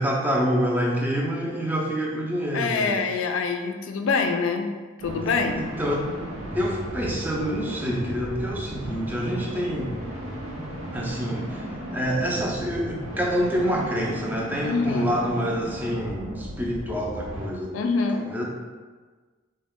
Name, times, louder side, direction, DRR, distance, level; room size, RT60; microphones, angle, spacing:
voice 1, 0.0-3.0 5.6-6.0 6.5-9.9 10.9-11.6 11.9-17.7 18.1-18.4, equal, 10° right, -2 dB, 0.4 m, -27 dB
voice 2, 2.5-4.7 5.0-5.7 14.6-15.1 17.7-18.3, left 4 dB, 75° left, 5 dB, 0.4 m, -25 dB
sound 1, 5.0-17.5, right 1 dB, 90° right, 0.7 m, -35 dB
3.8 x 2.2 x 3.5 m, 1.4 s
head